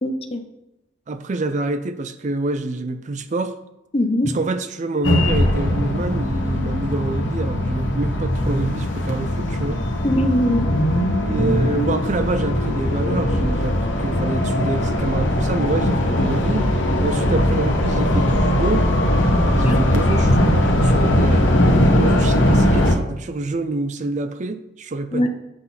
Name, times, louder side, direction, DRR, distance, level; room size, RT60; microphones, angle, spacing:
voice 1, 0.0-0.5 3.9-4.3 10.0-10.6 19.6-20.1 25.1-25.3, left 1 dB, 30° left, 6 dB, 0.7 m, -21 dB
voice 2, 1.1-3.6 4.3-9.8 11.3-16.7 17.0-18.9 19.5-21.6 21.8-25.3, right 3 dB, 40° right, 10 dB, 0.4 m, -27 dB
sound 1, 5.0-22.9, left 1 dB, 75° left, 1.1 m, -19 dB
7.8 x 5.8 x 4.1 m, 0.92 s
head